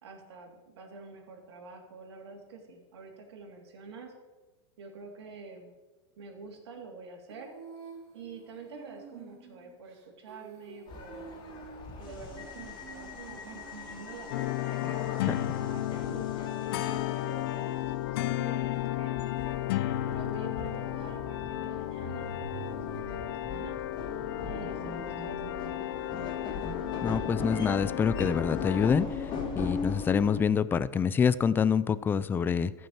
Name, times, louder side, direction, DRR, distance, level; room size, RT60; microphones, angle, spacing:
voice 1, 0.0-4.1 4.8-5.7 6.2-7.5 8.1-11.4 12.0-15.0 15.4-19.1 20.0-23.8 24.4-25.7, right 4 dB, 80° right, 2 dB, 3.3 m, -47 dB
Female singing, 7.3-15.0, right 6 dB, 50° right, 3.0 m, -50 dB
sound 1, 10.9-30.4, left 4 dB, 35° left, 2.8 m, -39 dB
sound 2, 14.3-28.9, left 15 dB, 65° left, 0.6 m, -33 dB
voice 2, 27.0-29.3 29.6-32.7, left 6 dB, 15° left, 17 dB, 0.4 m, -26 dB
14.0 x 6.4 x 7.3 m, 1.2 s
supercardioid pair, 130°, 14 cm